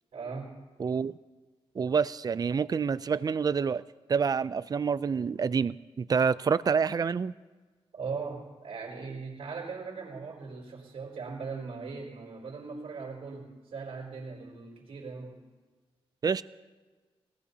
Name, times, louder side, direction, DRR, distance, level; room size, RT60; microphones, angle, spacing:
voice 1, 0.1-0.6 7.9-15.4, right 4 dB, 80° right, -3 dB, 4.5 m, -39 dB
voice 2, 0.8-1.1 1.7-3.8 4.1-7.3 16.2-16.4, right 6 dB, 40° right, 17 dB, 0.4 m, -27 dB
21.0 x 19.5 x 2.8 m, 1.4 s
wide cardioid pair, 120°, 10 cm